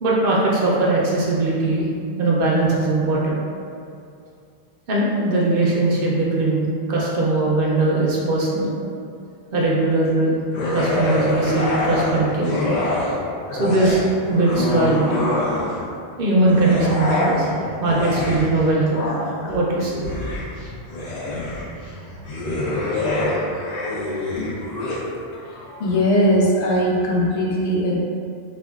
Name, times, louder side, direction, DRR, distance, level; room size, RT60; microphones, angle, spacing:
voice 1, 0.0-1.9 2.2-3.4 4.9-8.7 9.5-10.3 10.7-12.5 13.5-15.2 16.2-17.5 17.8-19.1 19.5-19.9, right 2 dB, 60° right, -5 dB, 0.8 m, -20 dB
sound 1, 10.5-13.2 13.5-15.9 16.4-25.0, left 2 dB, 50° left, 0.6 m, -25 dB
voice 2, 25.3-27.9, equal, 90° left, -4 dB, 1.0 m, -20 dB
4.4 x 2.4 x 2.3 m, 2.4 s
omnidirectional pair, 1.1 m